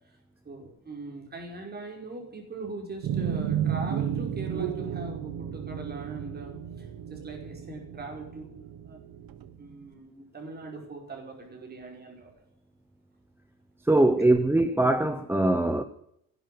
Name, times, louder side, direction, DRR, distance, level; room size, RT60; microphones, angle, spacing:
voice 1, 0.4-8.5 8.8-9.0 9.6-12.3 13.9-14.1, right 3 dB, 25° right, 5.3 m, -41 dB
sound 1, 3.0-9.6, right 9 dB, 75° right, 1.3 m, -33 dB
voice 2, 13.8-15.8, right 2 dB, 5° right, 0.7 m, -22 dB
16.5 x 11.0 x 7.8 m
cardioid pair, 170°, 36 cm